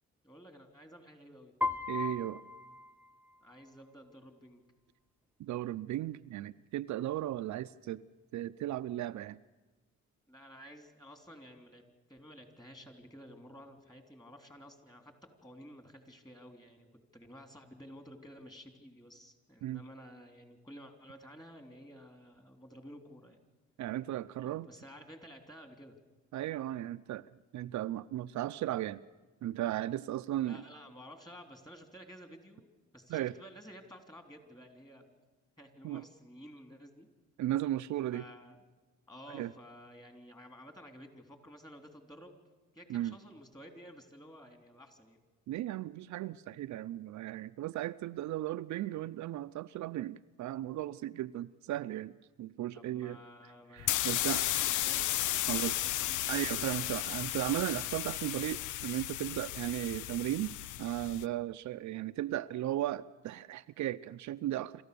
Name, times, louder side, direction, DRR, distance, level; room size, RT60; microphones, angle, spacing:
voice 1, 0.2-1.5 3.4-4.6 10.3-15.1 15.4-16.9 17.1-23.5 24.4-25.9 30.4-32.7 32.9-35.1 35.6-37.1 38.1-38.6 39.1-42.4 42.7-45.2 52.7-56.4, equal, 15° left, 5 dB, 3.4 m, -53 dB
Piano, 1.6-3.6, left 3 dB, 5° right, 0.8 m, -37 dB
voice 2, 1.9-2.4 5.4-8.0 8.3-9.4 19.6-19.8 23.8-24.7 26.3-29.0 29.4-30.6 33.1-33.3 35.8-36.0 37.4-38.2 39.3-39.5 42.9-43.2 45.5-52.1 52.4-53.2 53.7-54.4 55.5-55.9 56.3-60.5 60.8-64.8, right 13 dB, 70° right, 11 dB, 0.6 m, -36 dB
sound 1, 53.8-61.2, left 14 dB, 80° left, 0.5 m, -34 dB
27.0 x 14.0 x 6.9 m, 1.2 s
cardioid pair, 90°, 30 cm